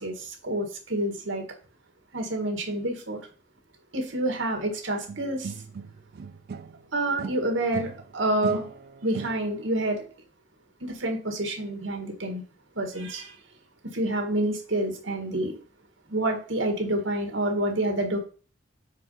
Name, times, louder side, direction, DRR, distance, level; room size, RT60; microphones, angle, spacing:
voice 1, 0.0-1.4 2.1-3.2 3.9-5.5 6.9-8.7 9.0-10.0 10.8-12.4 12.7-13.4 13.9-15.6 16.1-18.2, right 1 dB, 90° right, 3 dB, 1.6 m, -28 dB
sound 1, 5.1-6.9 7.2-9.8, right 5 dB, 55° right, 0.4 m, -38 dB
4.6 x 4.2 x 5.5 m, 0.39 s
head